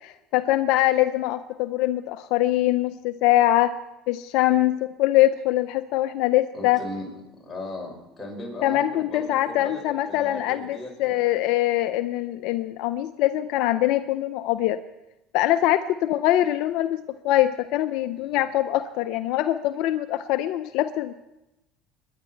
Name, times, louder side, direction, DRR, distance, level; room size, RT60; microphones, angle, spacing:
voice 1, 0.0-3.7 4.1-6.8 8.6-14.8 15.3-17.0 17.2-21.1, left 14 dB, 70° left, 11 dB, 0.5 m, -23 dB
voice 2, 6.5-11.5 18.2-18.5, left 2 dB, 15° left, -2 dB, 6.0 m, -38 dB
22.5 x 10.5 x 4.5 m, 0.93 s
supercardioid pair, 90°, 0 cm